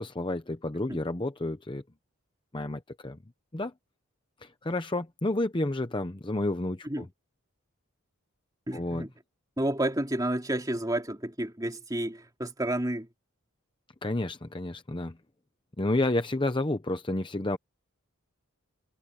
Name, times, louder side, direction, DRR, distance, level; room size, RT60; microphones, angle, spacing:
voice 1, 0.0-1.8 2.5-3.2 3.5-3.7 4.4-7.1 8.7-9.1 14.0-15.2 15.8-17.6, left 2 dB, 20° left, 0.8 m, -30 dB
voice 2, 8.7-9.1 9.6-13.1, right 1 dB, 15° right, 2.9 m, -30 dB
head